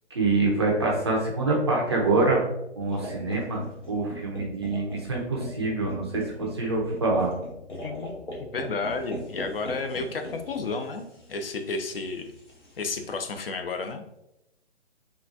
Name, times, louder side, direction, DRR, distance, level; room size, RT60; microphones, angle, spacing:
voice 1, 0.1-2.4 2.8-3.6 3.9-7.3, right 3 dB, 25° right, -2 dB, 0.4 m, -25 dB
sound 1, 2.9-13.3, equal, 80° left, 1.1 m, -41 dB
voice 2, 7.8-8.1 8.5-12.3 12.8-14.0, left 3 dB, 55° left, 6 dB, 0.4 m, -32 dB
3.7 x 2.3 x 2.6 m, 0.86 s
figure-of-eight pair, 135°, 35 cm